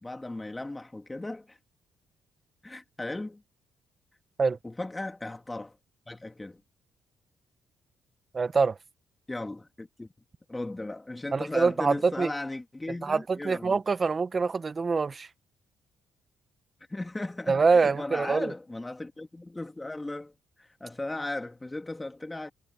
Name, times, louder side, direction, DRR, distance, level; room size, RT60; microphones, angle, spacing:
voice 1, 0.0-1.6 2.6-3.4 4.6-5.8 6.1-6.6 9.3-10.1 10.5-13.8 16.9-20.3 20.6-22.5, left 2 dB, 15° left, 2.9 m, -36 dB
voice 2, 8.3-8.7 11.3-12.3 13.0-15.3 17.5-18.5, right 4 dB, 35° right, 1.2 m, -25 dB
cardioid pair, 90°, 0 cm